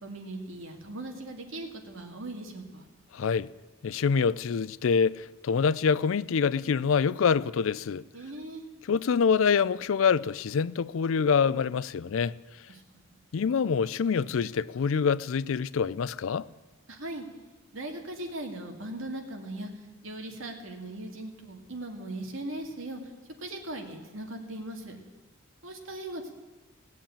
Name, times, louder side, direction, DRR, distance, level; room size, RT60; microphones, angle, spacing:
voice 1, 0.0-2.8 8.1-8.6 12.9-13.2 16.9-17.3 17.7-19.7 20.0-23.0 23.4-25.0 25.6-26.3, right 1 dB, 75° right, 2.2 m, -39 dB
voice 2, 3.1-3.5 3.8-8.0 8.9-12.3 13.3-16.4, left 6 dB, 75° left, 0.4 m, -25 dB
18.0 x 7.4 x 8.8 m
head